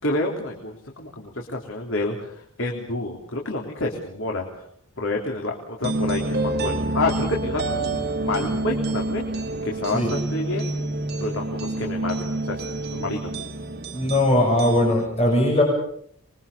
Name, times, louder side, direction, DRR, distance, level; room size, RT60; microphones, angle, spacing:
voice 1, 0.0-2.3 2.6-4.5 5.0-9.3 9.6-10.7 11.2-12.6 12.9-13.2, left 2 dB, 60° left, 0 dB, 3.7 m, -28 dB
sound 1, 5.8-15.1, right 2 dB, 50° right, 3.1 m, -28 dB
voice 2, 13.9-15.6, left 1 dB, 30° left, -1 dB, 6.9 m, -19 dB
27.0 x 23.0 x 7.0 m, 0.65 s
head